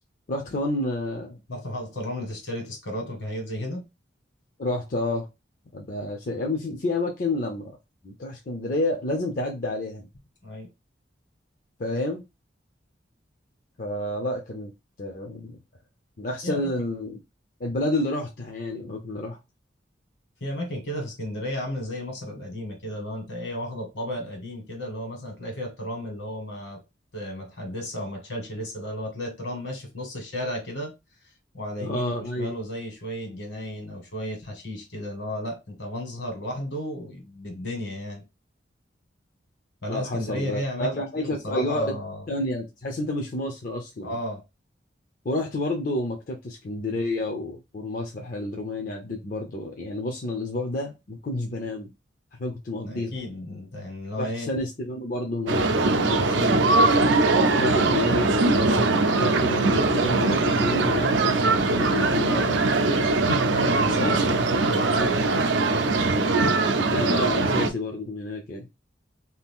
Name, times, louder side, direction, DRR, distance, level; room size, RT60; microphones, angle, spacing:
voice 1, 0.3-1.4 4.6-5.3 5.7-7.8 8.0-10.1 11.8-12.2 13.8-14.7 15.0-15.6 16.2-17.2 17.6-19.4 31.8-32.5 39.9-42.0 42.3-44.2 45.2-51.9 52.4-53.2 54.2-55.6 55.9-56.8 57.4-62.6 64.0-64.1 66.8-68.7, left 1 dB, 45° left, 0.5 m, -29 dB
voice 2, 1.5-3.8 10.4-10.7 16.4-16.7 20.4-26.8 27.1-30.9 31.5-38.2 39.8-42.2 44.0-44.4 52.8-54.5 56.3-56.6 63.4-65.3, left 1 dB, 75° left, 1.5 m, -33 dB
sound 1, 55.5-67.7, right 3 dB, 75° right, 0.5 m, -21 dB
2.7 x 2.4 x 3.5 m
head